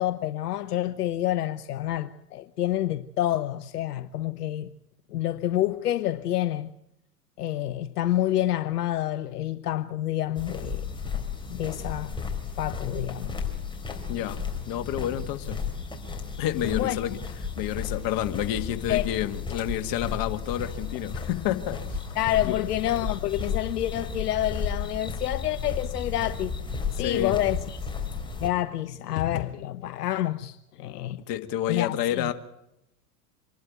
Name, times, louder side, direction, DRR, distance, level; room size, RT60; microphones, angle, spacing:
voice 1, 0.0-4.7 5.1-6.7 7.4-10.8 11.5-12.2 12.6-13.4 16.6-17.0 18.9-19.1 22.2-26.6 26.9-27.8 28.4-31.2 31.7-32.3, left 13 dB, 75° left, 0.9 m, -28 dB
sound 1, 10.4-28.5, left 5 dB, 10° left, 3.6 m, -33 dB
voice 2, 14.7-15.6 16.4-17.2 17.6-22.0 22.4-22.5 27.0-27.4 31.3-32.3, left 12 dB, 45° left, 1.9 m, -29 dB
26.0 x 12.0 x 9.2 m
hypercardioid pair, 100°, 47 cm